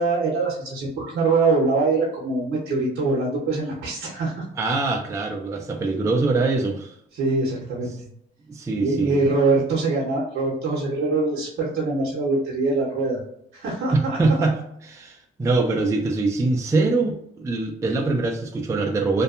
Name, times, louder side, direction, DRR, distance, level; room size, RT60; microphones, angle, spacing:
voice 1, 0.0-4.4 7.2-7.9 8.7-13.2 13.5-14.2, right 3 dB, 70° right, -4 dB, 0.7 m, -23 dB
voice 2, 4.5-7.0 8.5-9.3 13.9-19.2, right 3 dB, 15° right, 1 dB, 0.3 m, -23 dB
2.6 x 2.2 x 2.4 m, 0.73 s
cardioid pair, 90°, 20 cm